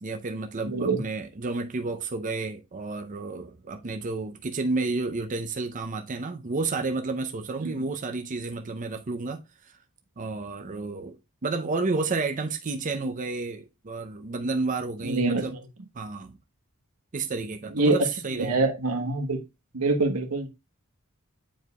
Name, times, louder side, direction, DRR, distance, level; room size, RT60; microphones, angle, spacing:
voice 1, 0.0-9.4 10.2-15.5 15.9-16.4 17.1-18.6, right 3 dB, 35° right, 0.6 m, -31 dB
voice 2, 0.6-1.0 7.6-7.9 15.0-15.6 17.7-19.4 19.7-20.5, right 3 dB, 85° right, 1.2 m, -25 dB
9.0 x 4.6 x 2.2 m
head